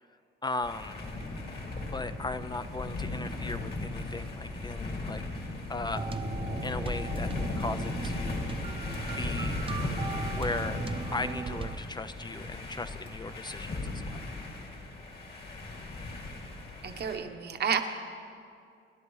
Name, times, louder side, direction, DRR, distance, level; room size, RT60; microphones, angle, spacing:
voice 1, 0.4-1.0 1.9-5.2 5.7-6.1 6.6-8.5 9.2-9.6 10.3-10.8 11.1-14.2, left 3 dB, 20° left, 11 dB, 0.4 m, -37 dB
sound 1, 0.6-17.2, left 2 dB, 50° left, 2.4 m, -36 dB
sound 2, 5.9-11.8, right 4 dB, 25° right, 0.6 m, -38 dB
voice 2, 16.8-17.8, right 7 dB, 55° right, 6 dB, 1.0 m, -30 dB
25.5 x 10.5 x 3.1 m, 2.4 s
cardioid pair, 90°, 20 cm